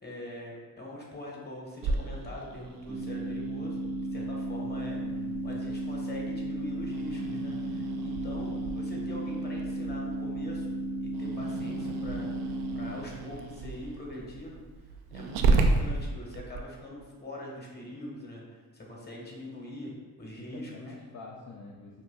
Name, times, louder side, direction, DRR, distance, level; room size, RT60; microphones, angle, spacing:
voice 1, 0.0-3.8 4.1-5.0 5.4-10.7 11.0-12.3 12.7-14.6 15.1-18.4 18.7-19.9 20.2-20.9, left 1 dB, 25° left, -2 dB, 1.3 m, -42 dB
Growling, 1.8-16.6, right 3 dB, 70° right, 0.5 m, -34 dB
sound 1, 2.9-12.9, right 1 dB, 15° right, 0.7 m, -34 dB
voice 2, 5.0-5.5 19.9-20.0 20.4-22.0, left 3 dB, 40° left, -2 dB, 0.7 m, -46 dB
5.8 x 2.6 x 2.3 m, 1.3 s
hypercardioid pair, 50°, 42 cm